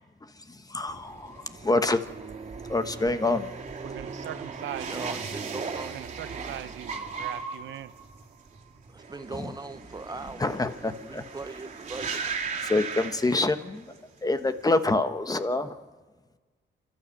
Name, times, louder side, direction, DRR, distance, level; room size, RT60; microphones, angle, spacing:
voice 1, 0.5-2.0 2.7-3.5 9.3-9.5 10.4-11.2 12.6-13.9 14.2-15.8, left 2 dB, 20° left, 10 dB, 1.2 m, -26 dB
sound 1, 0.9-14.0 14.3-14.8, right 5 dB, 35° right, 2.9 m, -38 dB
voice 2, 3.8-5.2 5.9-7.9 8.3-8.8, right 11 dB, 70° right, 13 dB, 0.8 m, -41 dB
voice 3, 4.9-6.0 8.9-10.5 11.0-12.3, right 3 dB, 20° right, 10 dB, 0.7 m, -39 dB
30.0 x 12.5 x 7.9 m, 1.4 s
cardioid pair, 90°, 20 cm